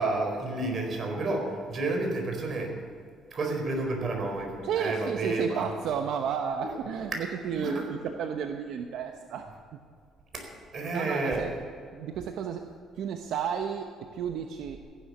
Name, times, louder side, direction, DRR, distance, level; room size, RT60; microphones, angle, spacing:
voice 1, 0.0-2.7 3.3-5.7 7.6-7.9 10.3-10.5 10.7-11.4, right 2 dB, 45° right, 3 dB, 4.4 m, -30 dB
voice 2, 4.6-9.8 10.9-11.5 11.9-14.8, right 7 dB, 75° right, 5 dB, 0.9 m, -33 dB
14.5 x 11.5 x 7.1 m, 2.1 s
cardioid pair, 105°, 0 cm